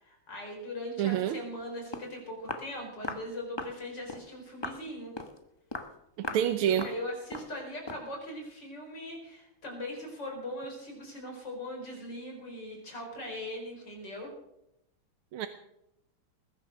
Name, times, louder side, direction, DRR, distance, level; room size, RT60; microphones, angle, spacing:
voice 1, 0.0-5.1 6.2-14.3, left 1 dB, 55° left, 1 dB, 5.0 m, -40 dB
voice 2, 1.0-1.4 6.2-6.9 15.3-15.5, right 10 dB, 80° right, 9 dB, 1.7 m, -27 dB
Walk footsteps, 1.6-1.7 1.9-2.1 2.5-2.7 3.0-3.3 3.6-3.8 4.1-4.3 4.6-4.8 5.2-5.4 5.7-5.9 6.2-6.5 6.8-7.0 7.3-7.5 7.9-8.1, left 2 dB, 20° left, 0.7 m, -38 dB
20.5 x 10.5 x 6.5 m, 0.83 s
omnidirectional pair, 2.3 m